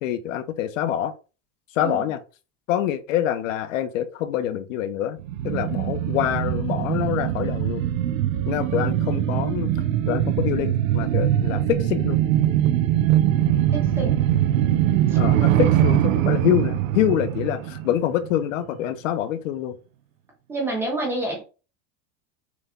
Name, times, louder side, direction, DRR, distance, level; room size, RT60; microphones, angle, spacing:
voice 1, 0.0-1.1 1.7-2.2 2.7-5.2 5.4-7.8 8.4-9.7 10.1-12.2 15.1-19.8, left 11 dB, 80° left, 0.9 m, -25 dB
sound 1, 5.2-18.4 18.8-18.9, right 12 dB, 90° right, 0.7 m, -22 dB
voice 2, 13.7-14.2 20.5-21.4, right 2 dB, 5° right, 0.4 m, -28 dB
6.1 x 2.3 x 3.6 m
supercardioid pair, 180°, 38 cm